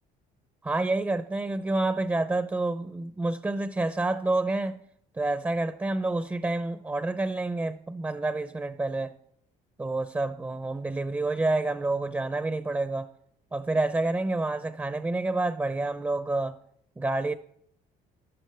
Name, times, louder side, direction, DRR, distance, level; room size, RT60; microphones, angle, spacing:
voice 1, 0.6-4.8 5.1-9.1 9.8-13.1 13.5-16.6 17.0-17.3, right 2 dB, 15° right, 0.6 m, -28 dB
14.5 x 11.5 x 3.4 m
cardioid pair, 110°, 17 cm